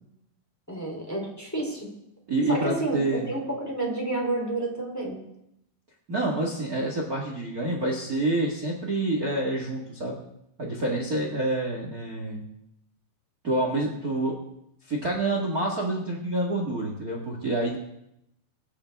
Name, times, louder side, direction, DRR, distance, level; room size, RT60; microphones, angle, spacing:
voice 1, 0.7-1.9 2.5-5.2, right 2 dB, 5° left, -1 dB, 2.3 m, -30 dB
voice 2, 2.3-3.3 6.1-10.2 10.6-12.4 13.4-14.3 14.9-17.8, right 2 dB, 50° right, 0 dB, 1.0 m, -27 dB
23.5 x 9.7 x 3.5 m, 0.80 s
omnidirectional pair, 4.6 m